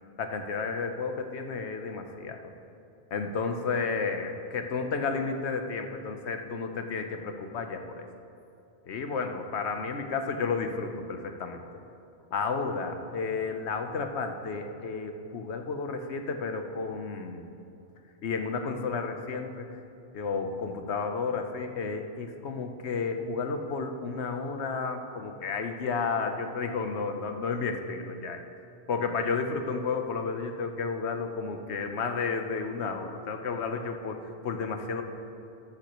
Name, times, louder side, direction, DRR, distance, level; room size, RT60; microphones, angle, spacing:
voice 1, 0.2-2.4 3.1-8.1 8.9-11.6 12.3-17.4 18.2-19.7 20.1-28.4 28.9-34.2 34.4-35.0, left 4 dB, 70° left, 6 dB, 1.1 m, -32 dB
13.0 x 13.0 x 3.0 m, 2.6 s
omnidirectional pair, 1.2 m